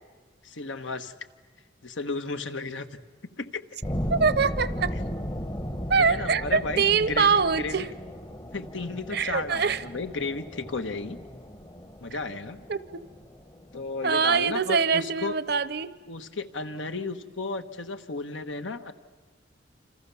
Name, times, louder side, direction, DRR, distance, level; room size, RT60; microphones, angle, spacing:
voice 1, 0.4-1.1 1.8-3.0 3.4-3.6 6.1-7.9 8.5-11.2 12.0-12.6 13.7-15.4 16.1-18.9, left 3 dB, 80° left, 8 dB, 1.3 m, -33 dB
sound 1, 3.8-14.6, equal, 25° left, 1.0 m, -36 dB
voice 2, 4.1-5.0 5.9-7.9 9.1-9.8 12.1-12.2 12.7-13.0 14.0-15.9, right 5 dB, 55° right, 16 dB, 0.8 m, -24 dB
28.0 x 27.5 x 7.1 m, 1.4 s
head